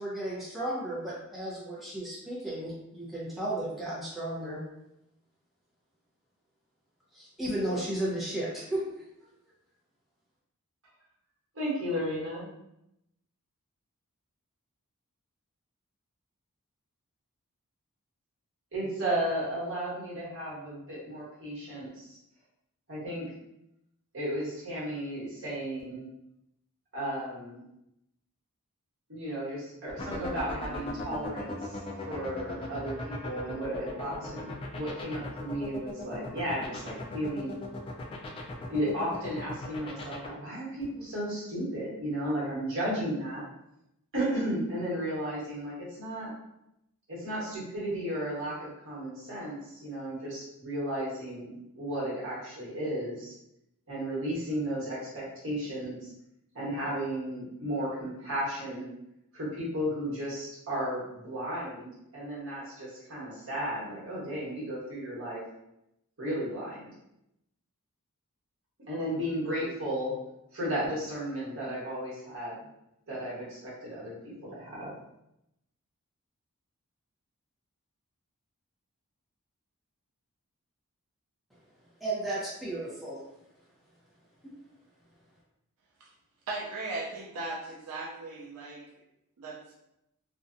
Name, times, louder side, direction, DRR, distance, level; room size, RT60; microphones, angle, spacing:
voice 1, 0.0-4.6 7.1-8.8 82.0-83.2, right 1 dB, ahead, -8 dB, 0.7 m, -34 dB
voice 2, 11.5-12.5 18.7-22.2 22.9-23.2 24.1-26.1 26.9-27.6 29.1-31.8 32.1-34.5 34.7-37.6 38.7-43.4 44.1-46.3 47.1-53.3 53.9-56.1 56.5-58.9 59.3-65.4 66.2-66.9 68.9-70.1 70.5-72.6 73.1-74.9, right 1 dB, 60° right, -7 dB, 1.2 m, -34 dB
sound 1, 29.9-40.3, left 2 dB, 25° left, 0.3 m, -38 dB
voice 3, 86.5-88.8 89.4-89.7, right 2 dB, 80° right, -3 dB, 0.5 m, -37 dB
2.6 x 2.2 x 2.5 m, 0.84 s
head